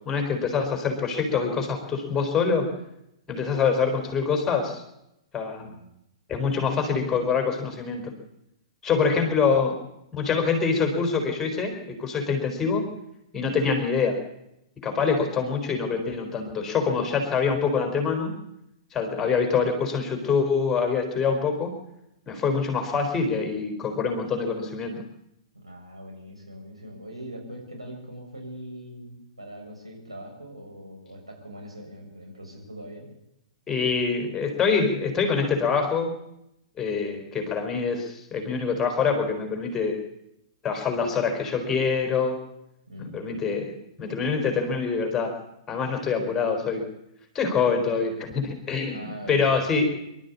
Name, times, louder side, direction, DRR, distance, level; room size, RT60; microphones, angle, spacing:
voice 1, 0.0-2.7 3.3-4.8 5.3-5.7 6.3-8.1 8.8-9.7 10.1-12.9 13.3-14.2 14.8-18.3 18.9-21.7 22.3-25.0 33.7-36.1 36.8-40.0 40.6-42.4 43.1-45.3 45.7-46.9 47.3-49.9, left 5 dB, 15° left, 5 dB, 4.4 m, -25 dB
voice 2, 5.6-5.9 8.9-9.4 25.5-33.1 42.9-43.2 48.9-49.6, equal, 85° right, 1 dB, 7.3 m, -41 dB
25.5 x 12.5 x 8.5 m, 0.85 s
figure-of-eight pair, 110°, 3 cm